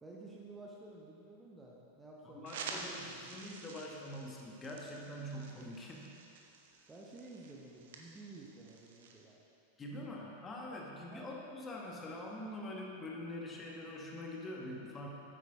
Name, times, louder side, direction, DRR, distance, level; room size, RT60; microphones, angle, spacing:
voice 1, 0.0-3.3 6.9-9.4 9.9-10.1 11.1-11.3, right 2 dB, 15° right, -3 dB, 0.9 m, -52 dB
voice 2, 2.2-6.2 9.8-15.1, left 1 dB, 20° left, -2 dB, 1.3 m, -44 dB
sound 1, 2.4-9.2, right 4 dB, 55° right, 0.8 m, -49 dB
9.4 x 8.1 x 3.5 m, 2.7 s
figure-of-eight pair, 90°, 0 cm